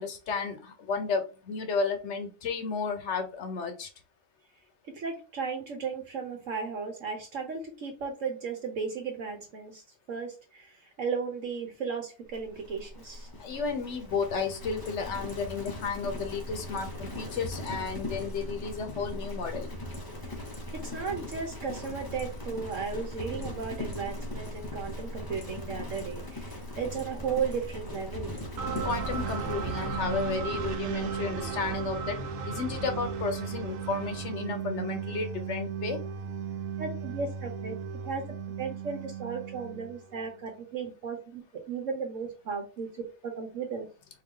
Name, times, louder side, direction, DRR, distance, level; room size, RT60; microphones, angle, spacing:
voice 1, 0.0-3.9 13.4-19.7 28.8-32.2 32.5-36.0, left 5 dB, 55° left, 6 dB, 1.1 m, -33 dB
voice 2, 4.9-13.3 20.2-20.4 20.7-28.3 36.8-37.8 38.0-41.4 41.7-42.9 43.2-43.9, right 5 dB, 60° right, 3 dB, 1.1 m, -35 dB
Livestock farm animals working animals, 12.3-32.0, left 1 dB, 20° left, 0.6 m, -39 dB
sound 1, 28.6-40.3, right 6 dB, 90° right, 1.2 m, -35 dB
4.6 x 2.7 x 3.7 m, 0.32 s
omnidirectional pair, 1.6 m